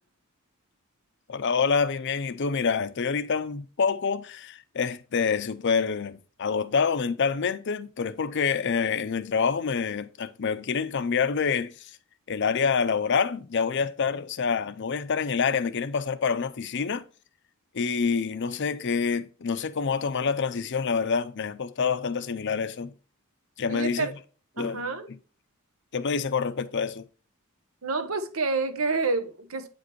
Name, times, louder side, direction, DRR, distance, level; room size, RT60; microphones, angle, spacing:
voice 1, 1.3-11.7 12.3-17.0 17.7-22.9 23.6-24.1 24.6-24.8 25.1-25.2 25.9-27.0, left 5 dB, 55° left, 0.5 m, -27 dB
voice 2, 23.7-24.1 24.6-25.1 27.8-29.7, right 3 dB, 75° right, 1.0 m, -28 dB
8.7 x 5.1 x 3.0 m
head